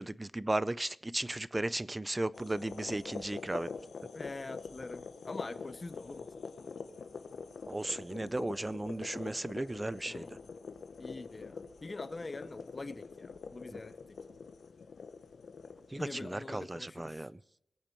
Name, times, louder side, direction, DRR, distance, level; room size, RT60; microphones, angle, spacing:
voice 1, 0.0-3.7 7.7-10.4 13.7-13.8 15.9-17.4, right 2 dB, 20° right, 0.5 m, -35 dB
sound 1, 2.3-16.6, left 5 dB, 70° left, 1.1 m, -45 dB
voice 2, 4.1-6.3 10.1-10.5 11.0-14.2 16.0-17.3, left 3 dB, 30° left, 0.8 m, -44 dB
22.5 x 8.7 x 4.5 m
wide cardioid pair, 100°, 0 cm